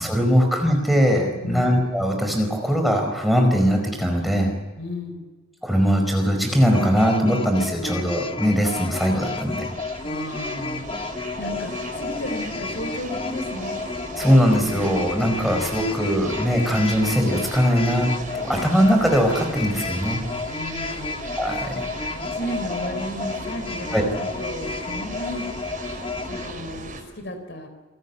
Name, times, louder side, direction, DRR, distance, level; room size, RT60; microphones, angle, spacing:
voice 1, 0.0-4.5 5.6-9.7 14.2-20.2 21.4-21.8 23.9-24.1, equal, ahead, 2 dB, 4.6 m, -21 dB
voice 2, 4.8-5.2 10.0-10.9 11.4-13.8 20.4-21.3 21.7-21.9 22.2-25.5 26.3-27.7, left 1 dB, 55° left, 7 dB, 4.2 m, -33 dB
sound 1, 6.7-26.5, left 3 dB, 25° left, 1.2 m, -32 dB
sound 2, 8.2-27.0, right 2 dB, 40° right, 4.5 m, -38 dB
28.5 x 17.5 x 8.3 m, 1.4 s
head